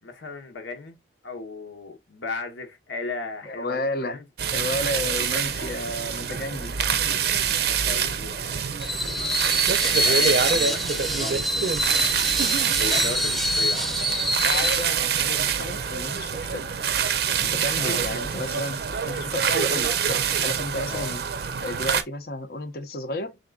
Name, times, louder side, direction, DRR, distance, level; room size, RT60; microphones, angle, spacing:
voice 1, 0.0-4.2 7.6-9.5 9.8-12.1 12.8-14.0 17.8-18.1 20.9-21.2, left 3 dB, 90° left, 1.0 m, -36 dB
voice 2, 3.5-4.2 4.5-6.7 14.4-16.7 17.4-18.8 19.1-21.2 21.6-23.4, left 1 dB, 55° left, 0.7 m, -32 dB
sound 1, 4.4-22.0, right 7 dB, 55° right, 0.5 m, -26 dB
Screech, 8.8-14.9, equal, ahead, 0.3 m, -26 dB
4.3 x 3.7 x 2.3 m
head